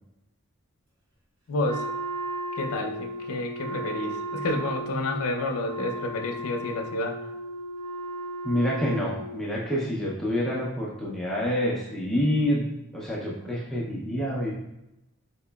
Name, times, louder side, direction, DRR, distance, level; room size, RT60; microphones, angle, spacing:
voice 1, 1.5-1.9 2.6-7.3, left 2 dB, 85° left, 3 dB, 0.5 m, -30 dB
Wind instrument woodwind instrument, 1.6-9.5, right 1 dB, 75° right, 1.1 m, -35 dB
voice 2, 8.4-12.7 12.9-14.5, equal, ahead, -5 dB, 0.4 m, -27 dB
4.1 x 2.9 x 2.2 m, 0.90 s
head